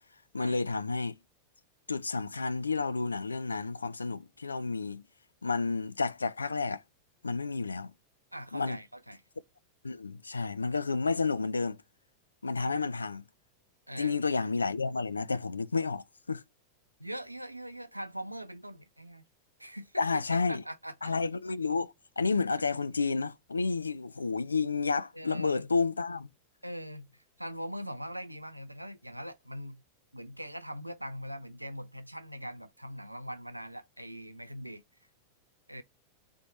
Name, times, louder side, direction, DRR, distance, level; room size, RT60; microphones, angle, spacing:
voice 1, 0.3-1.2 1.9-5.0 5.4-6.8 7.2-7.9 8.5-8.8 9.8-11.8 12.4-13.2 14.0-16.4 20.0-20.6 21.0-26.3, left 4 dB, 80° left, 0.3 m, -31 dB
voice 2, 8.3-9.2 13.9-14.2 17.0-19.2 19.6-21.1 25.1-25.7 26.6-29.8 30.1-34.8 35.7-35.8, equal, 85° right, 0.5 m, -42 dB
3.5 x 3.4 x 4.1 m
figure-of-eight pair, 90°, 0 cm